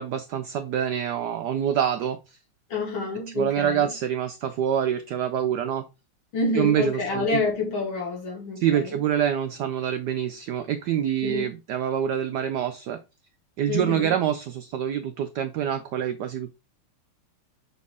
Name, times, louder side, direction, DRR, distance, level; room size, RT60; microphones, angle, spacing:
voice 1, 0.0-2.4 3.4-5.8 6.5-7.4 8.6-13.0 13.6-16.5, right 9 dB, 80° right, 0.9 m, -26 dB
voice 2, 2.7-3.9 6.3-9.0 11.2-11.5 13.7-14.2, left 3 dB, 70° left, 3.2 m, -28 dB
6.6 x 4.2 x 3.5 m
omnidirectional pair, 2.4 m